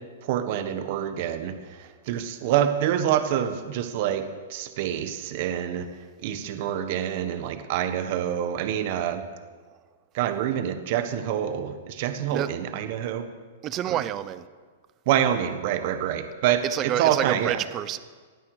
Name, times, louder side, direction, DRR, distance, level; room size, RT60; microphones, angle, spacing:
voice 1, 0.2-1.5 2.1-4.2 4.5-5.9 6.2-9.2 10.1-13.3 13.9-14.0 15.1-17.6, right 10 dB, 50° right, 1.3 m, -26 dB
voice 2, 13.6-14.5 16.6-18.0, right 12 dB, 25° right, 0.7 m, -28 dB
19.0 x 12.5 x 4.9 m
hypercardioid pair, 155°, 0 cm